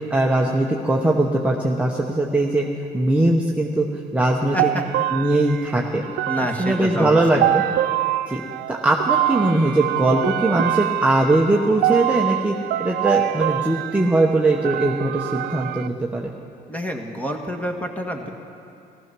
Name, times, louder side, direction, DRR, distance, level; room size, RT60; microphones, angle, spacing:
voice 1, 0.0-2.7 2.9-4.7 5.1-6.0 6.6-7.6 8.3-8.4 8.7-16.3, right 2 dB, 5° right, -1 dB, 0.9 m, -20 dB
voice 2, 4.5-4.8 6.3-7.4 16.7-18.3, equal, 10° left, 3 dB, 1.6 m, -27 dB
sound 1, 4.6-15.9, right 14 dB, 70° right, 0.4 m, -25 dB
15.5 x 14.0 x 6.1 m, 2.6 s
cardioid pair, 110°, 17 cm